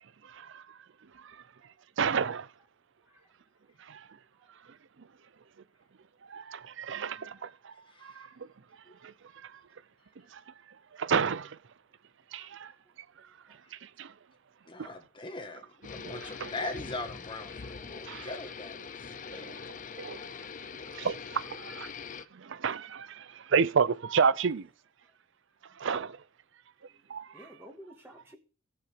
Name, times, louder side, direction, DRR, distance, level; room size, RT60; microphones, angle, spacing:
voice 1, 0.2-0.8 1.1-1.4 2.0-2.5 3.8-4.1 5.0-5.1 6.3-7.8 8.0-8.5 9.0-9.6 10.3-10.4 10.9-11.6 12.3-12.7 13.2-13.3 13.7-14.1 14.8-14.9 15.9-16.5 18.0-18.3 19.3-20.5 20.9-21.5 22.3-24.7 25.6-26.1 27.1-27.4, right 6 dB, 60° right, 0.5 m, -31 dB
voice 2, 7.9-8.3 14.7-18.8 19.3-19.6, left 2 dB, 25° left, 1.6 m, -41 dB
voice 3, 12.3-12.8 13.2-13.6 16.2-16.4 25.0-25.1 26.9-27.0 27.3-28.4, equal, 10° right, 2.4 m, -54 dB
sound 1, 15.8-22.3, left 6 dB, 40° left, 0.5 m, -43 dB
15.0 x 6.8 x 5.0 m
head